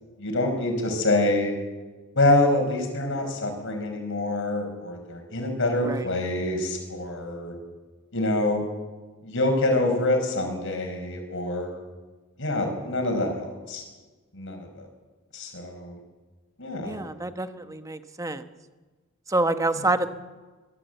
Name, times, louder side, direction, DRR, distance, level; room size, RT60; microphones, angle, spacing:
voice 1, 0.2-1.5 2.2-7.6 8.1-8.6 9.2-11.8 12.4-13.8 14.3-14.9 15.3-16.0 16.6-17.0, left 2 dB, 60° left, 4 dB, 5.2 m, -26 dB
voice 2, 16.8-18.4 19.3-20.1, right 2 dB, 15° right, 9 dB, 1.0 m, -27 dB
22.5 x 14.5 x 8.1 m, 1.3 s
head